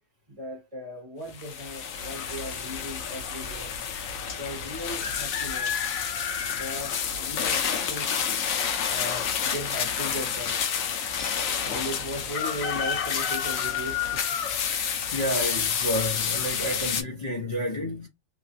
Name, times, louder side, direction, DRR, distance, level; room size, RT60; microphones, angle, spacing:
voice 1, 0.3-3.7 4.3-5.8 6.5-8.2 8.8-10.6 11.6-14.4, left 1 dB, 30° right, 0.8 m, -37 dB
sound 1, 1.3-17.0, left 7 dB, 80° left, 1.0 m, -29 dB
voice 2, 15.1-18.1, equal, 35° left, 0.9 m, -30 dB
2.9 x 2.3 x 2.6 m
omnidirectional pair, 1.4 m